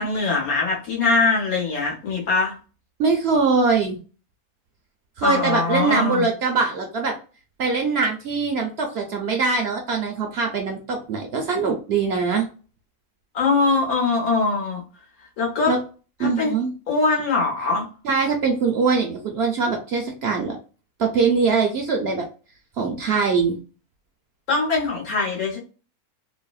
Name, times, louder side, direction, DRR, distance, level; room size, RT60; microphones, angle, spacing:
voice 1, 0.0-2.6 5.2-6.3 13.3-14.8 15.4-15.7 16.2-16.5 16.9-17.8 24.5-25.6, left 3 dB, 80° left, -2 dB, 1.7 m, -22 dB
voice 2, 3.0-4.0 5.2-7.1 7.6-12.5 15.7-15.8 16.2-16.7 18.0-20.6 21.0-22.3 22.8-23.6, right 4 dB, 60° right, 3 dB, 0.7 m, -22 dB
3.3 x 2.0 x 2.3 m, 0.35 s
omnidirectional pair, 1.5 m